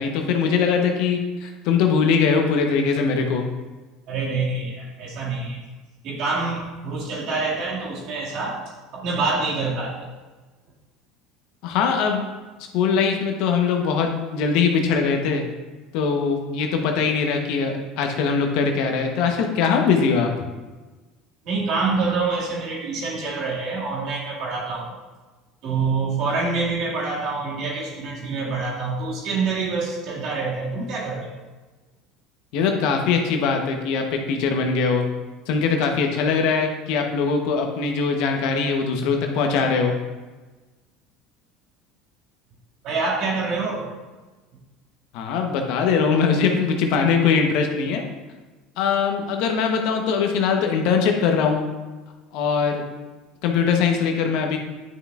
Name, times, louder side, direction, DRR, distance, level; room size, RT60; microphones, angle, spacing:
voice 1, 0.0-3.4 11.6-12.2 12.7-15.4 15.9-20.5 32.5-35.0 35.5-39.9 45.1-48.0 48.8-51.6 52.3-52.8 53.4-54.6, left 5 dB, 65° left, 3 dB, 1.0 m, -21 dB
voice 2, 4.1-5.6 6.0-8.6 8.9-10.1 21.4-25.0 25.6-31.3 42.8-43.8, right 4 dB, 60° right, -4 dB, 2.1 m, -26 dB
9.6 x 5.7 x 2.4 m, 1.2 s
hypercardioid pair, 80°, 0 cm